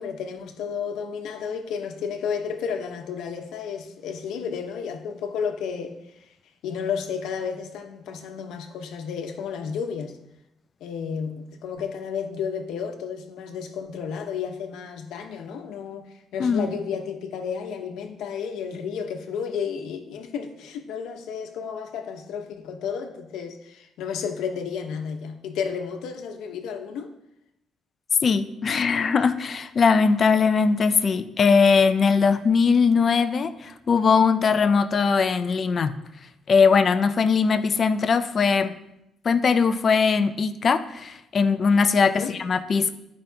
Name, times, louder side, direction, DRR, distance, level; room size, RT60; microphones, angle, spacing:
voice 1, 0.0-6.0 6.6-10.2 10.8-27.1 42.0-42.3, left 6 dB, 85° left, 5 dB, 1.0 m, -32 dB
voice 2, 28.2-35.9 36.5-38.7 39.2-42.9, left 5 dB, 30° left, 10 dB, 0.4 m, -20 dB
14.5 x 5.1 x 2.8 m, 0.88 s
cardioid pair, 175°, 0 cm